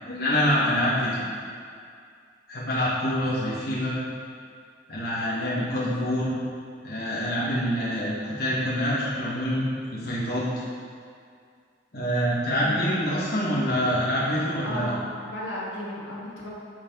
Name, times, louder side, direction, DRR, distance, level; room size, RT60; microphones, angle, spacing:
voice 1, 0.1-1.2 2.5-4.0 4.9-6.3 6.8-9.6 9.9-10.6 11.9-14.9, equal, 55° left, -8 dB, 1.7 m, -26 dB
voice 2, 12.6-13.0 14.6-16.5, left 1 dB, 80° left, -6 dB, 2.1 m, -34 dB
14.5 x 4.8 x 3.9 m, 2.2 s
head